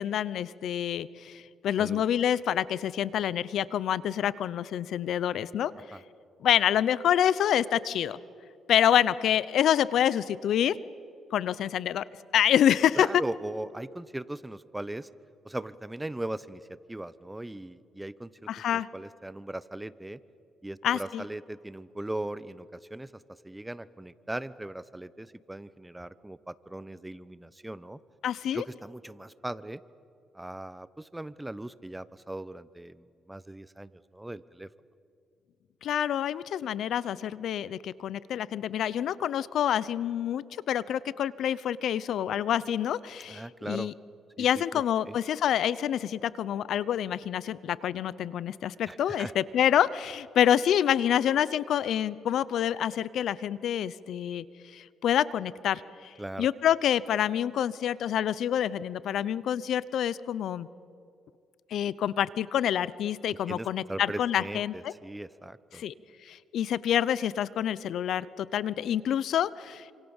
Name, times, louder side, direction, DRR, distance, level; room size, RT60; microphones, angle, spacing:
voice 1, 0.0-5.7 6.4-8.2 8.7-10.8 11.3-12.0 12.3-13.2 18.5-18.9 20.8-21.2 28.2-28.6 35.8-43.9 44.4-54.4 54.7-56.1 56.4-60.7 61.7-64.9 65.7-65.9 66.2-69.9, left 10 dB, 70° left, 18 dB, 0.8 m, -27 dB
voice 2, 13.0-15.1 15.4-20.2 20.6-28.0 28.5-29.8 30.3-34.7 43.3-43.9 44.4-45.2 48.9-49.3 56.2-56.5 63.5-65.8, right 1 dB, 10° right, 16 dB, 0.9 m, -39 dB
28.5 x 27.0 x 7.2 m, 2.5 s
cardioid pair, 90°, 0 cm